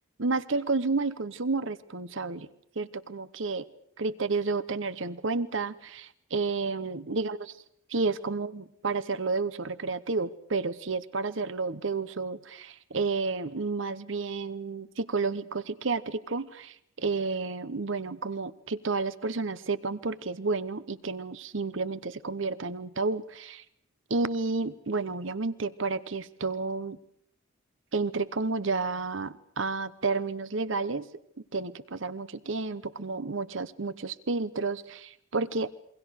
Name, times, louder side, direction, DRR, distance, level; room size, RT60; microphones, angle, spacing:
voice 1, 0.2-2.5 2.8-3.6 4.0-7.4 7.9-23.6 24.1-27.0 27.9-31.1 31.5-35.7, right 3 dB, 65° right, 16 dB, 1.0 m, -31 dB
28.0 x 23.5 x 6.5 m, 0.69 s
head